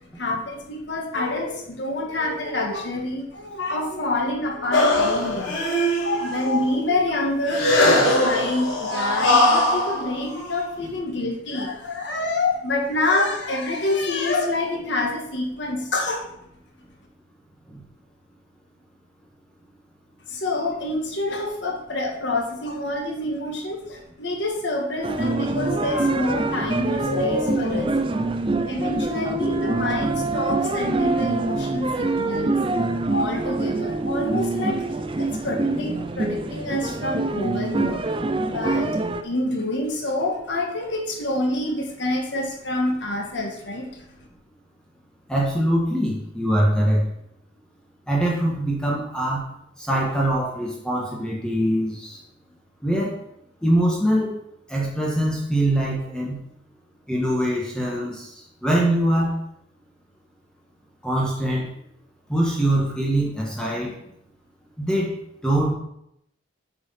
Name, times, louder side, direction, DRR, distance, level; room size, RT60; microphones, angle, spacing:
voice 1, 0.1-5.6 6.0-16.2 20.3-28.1 28.7-32.5 33.1-34.8 35.2-38.1 38.4-39.0 39.2-44.0, left 2 dB, 60° left, 1 dB, 1.5 m, -27 dB
sound 1, 4.7-6.5 7.5-10.8, left 1 dB, 90° left, 3.7 m, -20 dB
sound 2, 25.0-39.2, right 3 dB, 25° right, 0.5 m, -25 dB
voice 2, 45.3-47.0 48.1-49.5 49.8-52.2 52.8-53.1 53.6-54.3 54.7-56.4 57.1-58.3 58.6-59.3 61.0-61.7 62.3-64.0 64.8-65.1 65.4-65.7, right 1 dB, 5° left, -4 dB, 1.6 m, -23 dB
8.9 x 4.8 x 5.7 m, 0.77 s
head